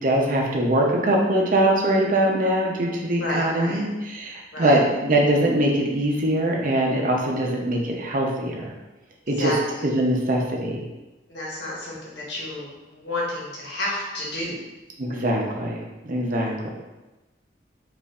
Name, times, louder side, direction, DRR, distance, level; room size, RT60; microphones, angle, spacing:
voice 1, 0.0-8.7 9.3-9.5 9.8-10.8 15.0-16.7, right 1 dB, 50° right, 0 dB, 0.6 m, -22 dB
voice 2, 3.2-3.8 4.5-4.8 9.4-9.8 11.3-14.5, left 1 dB, 85° left, -4 dB, 1.1 m, -31 dB
5.1 x 2.5 x 2.4 m, 1.1 s
head